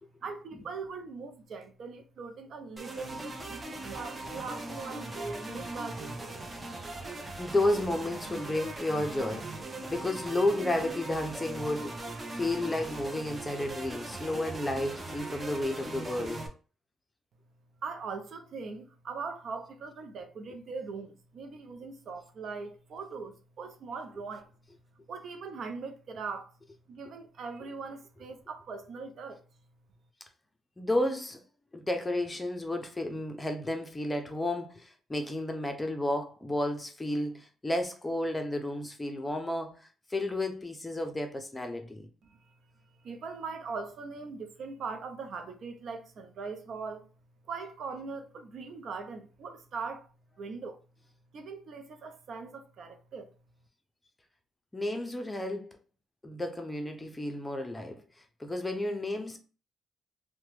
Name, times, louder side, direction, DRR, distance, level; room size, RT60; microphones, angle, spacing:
voice 1, 0.2-3.6 3.9-6.2 17.8-24.5 25.1-26.5 26.9-29.4 42.2-42.5 43.0-47.1 47.5-50.1 50.4-50.8 51.3-53.3, right 4 dB, 60° right, 0.6 m, -40 dB
sound 1, 2.8-16.5, right 2 dB, 25° right, 0.7 m, -40 dB
voice 2, 7.4-12.0 12.3-16.5 30.8-31.4 31.7-42.1 54.7-55.8 56.2-58.0 58.4-59.4, left 1 dB, 15° left, 0.6 m, -32 dB
2.9 x 2.2 x 3.1 m
cardioid pair, 90°, 0 cm